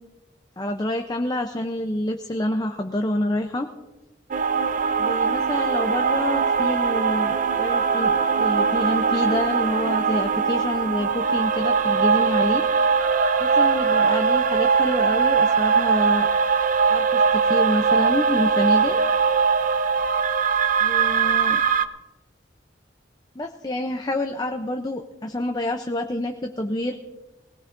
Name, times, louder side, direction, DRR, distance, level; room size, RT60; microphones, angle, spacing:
voice 1, 0.6-3.7 5.0-12.6 13.4-16.3 16.9-19.0 20.8-21.6 23.4-27.0, left 1 dB, 20° left, 5 dB, 0.6 m, -27 dB
sound 1, 4.3-21.9, right 5 dB, 45° right, 0.5 m, -21 dB
20.0 x 17.5 x 2.6 m, 1.1 s
head